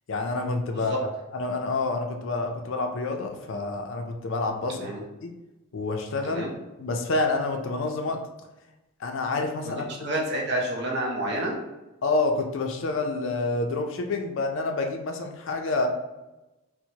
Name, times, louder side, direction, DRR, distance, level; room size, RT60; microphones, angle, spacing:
voice 1, 0.1-4.9 5.2-5.3 5.7-6.4 6.8-8.2 9.0-9.9 12.0-15.9, left 3 dB, 60° left, 4 dB, 0.4 m, -28 dB
voice 2, 4.7-5.0 6.2-6.5 10.0-11.6, right 1 dB, 50° right, -1 dB, 0.6 m, -29 dB
4.4 x 2.1 x 2.7 m, 1.0 s
head